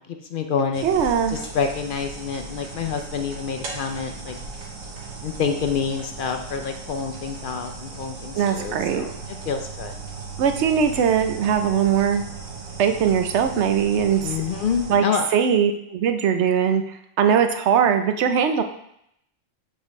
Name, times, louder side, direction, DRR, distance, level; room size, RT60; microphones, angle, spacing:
voice 1, 0.1-0.8 1.3-4.4 5.2-9.1 9.5-9.9 14.2-15.3, left 6 dB, 60° left, 5 dB, 0.5 m, -27 dB
sound 1, 0.7-14.9, right 4 dB, 80° right, 1.4 m, -37 dB
voice 2, 0.8-1.4 8.3-9.1 10.4-12.2 12.8-14.3 14.9-15.1 15.3-18.6, right 7 dB, 65° right, 7 dB, 0.9 m, -20 dB
7.3 x 5.0 x 3.1 m, 0.76 s
omnidirectional pair, 1.4 m